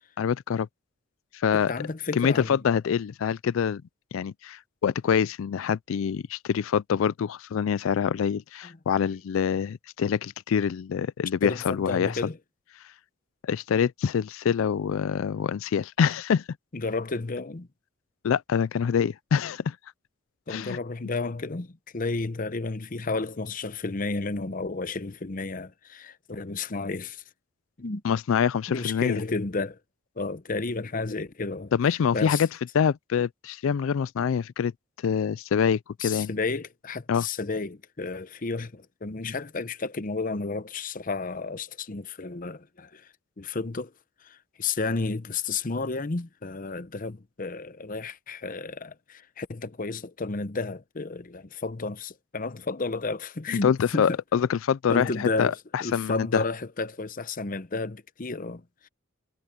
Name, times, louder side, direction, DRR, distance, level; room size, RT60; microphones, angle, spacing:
voice 1, 0.2-0.7 1.3-1.7 2.2-3.8 4.1-12.1 13.4-16.4 18.2-19.8 20.5-20.8 28.0-29.2 31.7-32.5 32.7-34.7 35.0-36.3 37.1-37.3 53.6-56.4, left 7 dB, 75° left, 0.4 m, -25 dB
voice 2, 1.5-2.6 8.6-8.7 9.1-9.2 11.4-12.4 16.7-17.7 20.5-27.2 27.8-28.0 28.7-29.8 30.2-31.7 32.1-32.4 36.0-43.9 44.2-54.2 54.9-58.9, left 3 dB, 40° left, 0.8 m, -32 dB
head